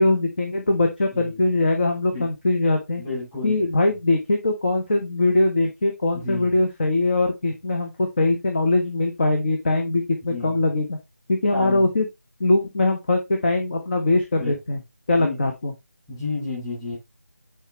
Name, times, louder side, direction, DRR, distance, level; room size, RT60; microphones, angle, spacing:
voice 1, 0.0-3.0 3.4-11.0 11.3-12.1 12.4-14.8 15.1-15.7, left 2 dB, 35° left, 1.1 m, -21 dB
voice 2, 3.0-3.6 6.2-6.5 10.3-10.6 11.5-11.8 14.4-14.6 15.1-15.5 16.1-17.0, left 3 dB, 10° left, 4.3 m, -31 dB
7.9 x 4.7 x 3.0 m
figure-of-eight pair, 160°, 9 cm